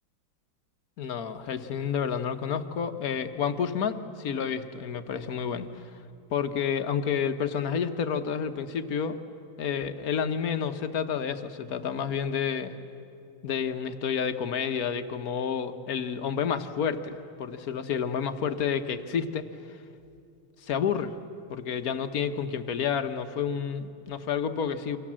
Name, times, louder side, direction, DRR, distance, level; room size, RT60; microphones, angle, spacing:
voice 1, 1.0-5.9 6.3-9.2 9.6-12.8 13.4-19.5 20.6-21.1 21.5-25.0, left 7 dB, 55° left, 9 dB, 1.3 m, -30 dB
29.5 x 25.0 x 7.5 m, 2.6 s
omnidirectional pair, 2.3 m